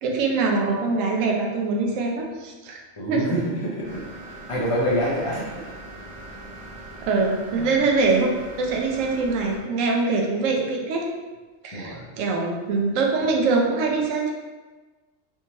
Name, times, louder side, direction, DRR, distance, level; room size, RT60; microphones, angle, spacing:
voice 1, 0.0-2.8 3.1-3.4 7.1-8.3 8.6-11.0 11.6-14.3, right 3 dB, 75° right, 0 dB, 1.0 m, -23 dB
voice 2, 3.0-5.6 7.6-7.7 11.7-12.1, equal, 45° left, -6 dB, 0.4 m, -27 dB
sound 1, 3.8-9.6, right 1 dB, 25° right, 0.8 m, -41 dB
3.4 x 2.8 x 2.8 m, 1.3 s
omnidirectional pair, 1.4 m